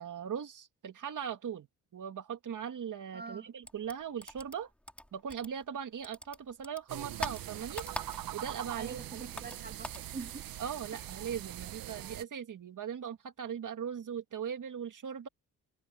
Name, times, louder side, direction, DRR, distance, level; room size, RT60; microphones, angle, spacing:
voice 1, 0.0-1.7 1.9-4.7 5.1-7.9 8.3-9.3 10.6-15.3, right 8 dB, 60° right, 2.2 m, -39 dB
voice 2, 3.1-3.5 8.8-10.4 10.9-11.0, right 4 dB, 30° right, 2.0 m, -45 dB
sound 1, 3.6-5.8 6.0-8.5 8.8-10.1, equal, 5° left, 3.7 m, -43 dB
sound 2, 6.9-12.2, right 13 dB, 75° right, 0.8 m, -43 dB
cardioid pair, 95°, 35 cm